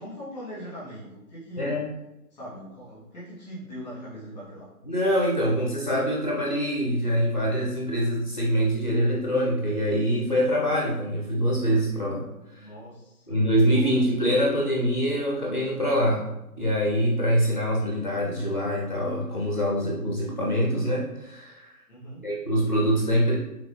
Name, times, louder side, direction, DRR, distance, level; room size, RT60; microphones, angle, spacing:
voice 1, 0.0-1.8 2.3-4.7 12.5-13.9 21.9-22.2, equal, 5° left, -8 dB, 1.4 m, -41 dB
voice 2, 1.6-1.9 4.8-12.2 12.5-12.7 13.3-16.3 16.6-21.8 22.2-23.4, equal, 30° left, -3 dB, 0.5 m, -24 dB
4.8 x 3.5 x 2.7 m, 0.94 s
figure-of-eight pair, 150°, 47 cm